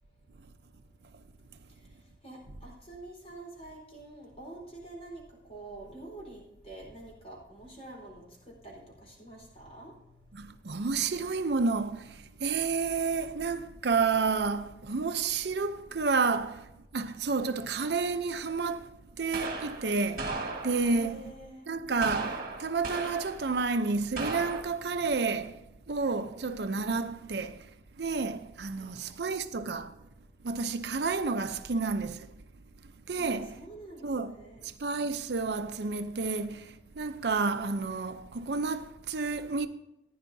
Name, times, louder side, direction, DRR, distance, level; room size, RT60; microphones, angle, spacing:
voice 1, 2.2-5.2 5.5-8.2 8.6-9.9 20.9-21.7 28.8-29.3 33.2-34.6, right 2 dB, 35° left, 4.1 m, -47 dB
voice 2, 10.3-16.7 16.9-18.9 19.2-20.3 20.6-21.2 21.7-25.6 25.9-27.6 28.0-30.0 30.4-32.3 33.1-33.6 34.0-34.4 34.8-39.7, right 4 dB, 70° right, 0.6 m, -30 dB
sound 1, 18.3-18.4 19.3-21.1 22.0-23.5 24.2-24.6, right 3 dB, 50° right, 1.6 m, -36 dB
15.0 x 10.0 x 2.7 m
head